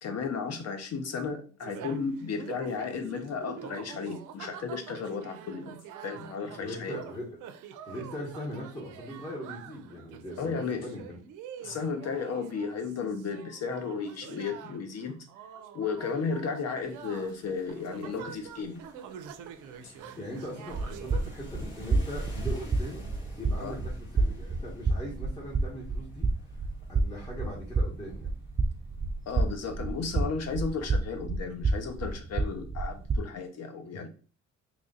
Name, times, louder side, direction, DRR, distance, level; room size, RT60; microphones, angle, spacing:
voice 1, 0.0-7.0 10.4-10.9 11.6-15.3 15.7-18.8 23.6-23.8 29.3-34.1, left 5 dB, 55° left, 0.8 m, -34 dB
sound 1, 1.6-21.3, right 8 dB, 90° right, 0.5 m, -46 dB
voice 2, 6.6-7.2 7.9-10.5 10.8-11.2 20.2-23.1 23.3-26.3 26.9-28.4, equal, 15° left, 1.5 m, -40 dB
sound 2, 16.8-29.4, left 2 dB, 40° left, 1.7 m, -54 dB
sound 3, 20.7-33.2, right 3 dB, 20° right, 0.4 m, -30 dB
3.1 x 2.5 x 3.9 m
cardioid pair, 90°, 30 cm